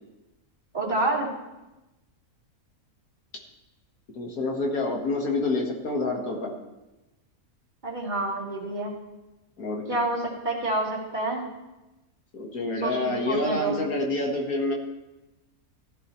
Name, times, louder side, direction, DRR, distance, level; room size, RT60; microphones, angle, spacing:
voice 1, 0.7-1.3 7.8-8.9 9.9-11.5 12.8-13.8, right 2 dB, 30° right, -4 dB, 2.4 m, -28 dB
voice 2, 4.2-6.5 9.6-10.0 12.3-14.7, left 2 dB, 80° left, 1 dB, 2.0 m, -28 dB
15.5 x 10.5 x 3.1 m, 1.0 s
omnidirectional pair, 1.5 m